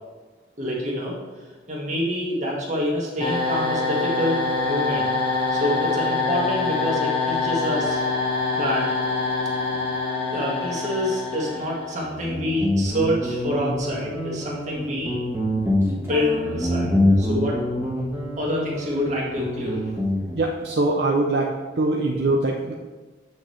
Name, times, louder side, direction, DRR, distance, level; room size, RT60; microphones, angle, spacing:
voice 1, 0.6-1.2 1.7-5.1 5.5-8.0 8.5-8.9 10.3-15.1 16.1-16.9 17.2-17.6 18.4-20.1, left 1 dB, 40° right, -3 dB, 1.7 m, -27 dB
sound 1, 3.2-12.1, left 3 dB, 30° left, 1.2 m, -25 dB
Guitar, 12.0-20.5, left 1 dB, 15° right, 1.4 m, -25 dB
voice 2, 20.3-21.5 21.8-22.7, right 2 dB, 60° right, 0 dB, 0.6 m, -22 dB
8.0 x 6.3 x 3.2 m, 1.3 s
head